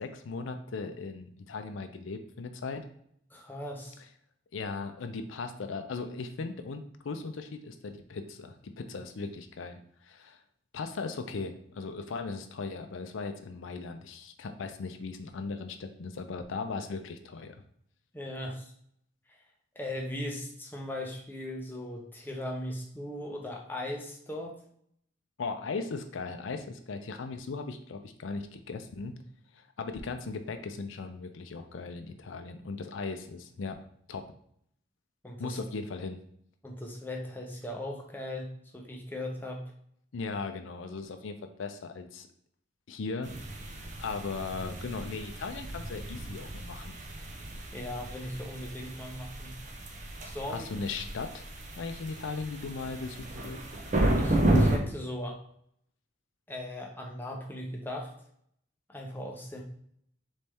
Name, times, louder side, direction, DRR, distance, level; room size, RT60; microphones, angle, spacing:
voice 1, 0.0-2.8 4.5-10.4 10.7-17.6 25.4-29.2 29.5-33.8 34.1-34.2 35.4-36.2 40.1-42.3 42.9-43.3 43.8-46.9 50.5-51.5 51.8-53.6, left 4 dB, 80° left, 7 dB, 0.5 m, -38 dB
voice 2, 3.3-4.0 18.1-18.7 19.3-19.4 19.8-24.6 35.2-35.6 36.6-39.7 47.7-49.6 50.2-50.7 54.2-55.4 56.5-58.1 58.9-59.6, left 1 dB, 10° left, 0 dB, 0.6 m, -38 dB
sound 1, 43.2-54.8, right 1 dB, 40° right, 0.6 m, -32 dB
4.1 x 3.2 x 3.4 m, 0.66 s
head